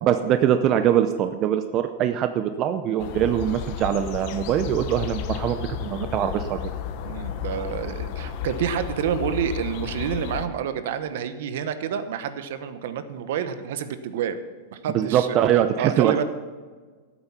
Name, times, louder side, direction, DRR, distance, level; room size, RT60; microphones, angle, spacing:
voice 1, 0.0-6.7 14.9-16.2, right 10 dB, 30° right, 9 dB, 0.5 m, -23 dB
sound 1, 3.0-10.5, left 9 dB, 45° left, 0.9 m, -33 dB
voice 2, 7.0-14.4 14.7-15.4 15.8-16.2, right 8 dB, 65° right, 11 dB, 1.1 m, -28 dB
13.0 x 8.8 x 5.7 m, 1.4 s
supercardioid pair, 160°, 0 cm